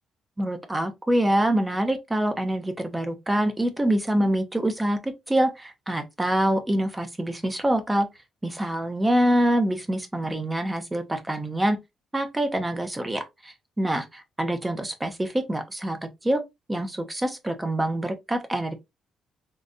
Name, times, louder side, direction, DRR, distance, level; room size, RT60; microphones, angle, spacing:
voice 1, 0.4-8.1 8.4-11.8 12.1-16.4 16.7-18.7, right 1 dB, 15° right, 0.9 m, -25 dB
3.8 x 2.5 x 2.6 m
cardioid pair, 90°, 0 cm